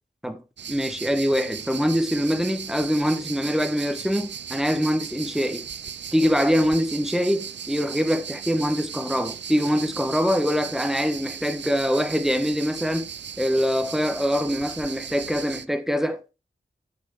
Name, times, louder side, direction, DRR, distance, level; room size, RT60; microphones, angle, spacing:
voice 1, 0.2-5.7 6.1-13.1 13.4-16.3, equal, ahead, 1.0 m, -24 dB
sound 1, 0.6-15.7, right 7 dB, 65° right, 0.4 m, -37 dB
8.4 x 6.1 x 3.5 m
wide cardioid pair, 50°, 20 cm